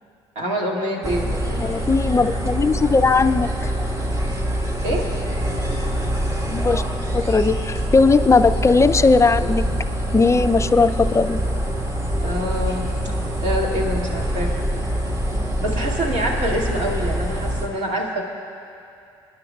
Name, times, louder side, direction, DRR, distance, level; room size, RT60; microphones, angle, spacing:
voice 1, 0.4-1.6 4.8-5.1 12.2-14.7 15.6-18.2, equal, 60° right, -2 dB, 2.3 m, -26 dB
sound 1, 1.0-17.7, equal, 25° right, 1.6 m, -25 dB
voice 2, 1.6-3.7 6.5-6.8 7.1-9.6 10.1-11.4, left 4 dB, 20° left, 11 dB, 0.4 m, -18 dB
27.0 x 10.0 x 2.4 m, 2.5 s
hypercardioid pair, 60°, 13 cm